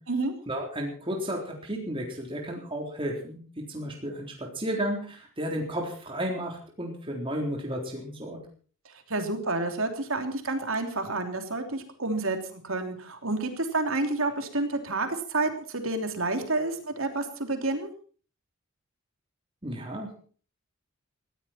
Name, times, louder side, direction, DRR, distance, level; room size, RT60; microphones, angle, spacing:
voice 1, 0.5-8.4 19.6-20.1, equal, 25° right, 0 dB, 3.7 m, -33 dB
voice 2, 9.1-17.9, right 2 dB, 65° right, 5 dB, 3.2 m, -29 dB
19.0 x 15.5 x 4.4 m, 0.42 s
head